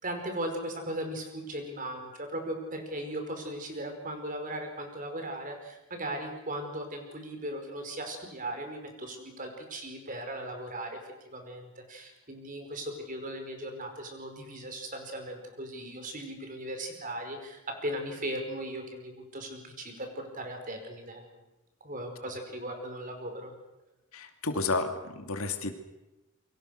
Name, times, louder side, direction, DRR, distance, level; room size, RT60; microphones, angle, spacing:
voice 1, 0.0-11.0 11.3-21.3 21.8-23.5, right 1 dB, 35° right, 5 dB, 4.9 m, -38 dB
voice 2, 24.1-25.7, left 3 dB, 70° left, 6 dB, 2.6 m, -31 dB
28.5 x 24.0 x 6.6 m, 1.0 s
head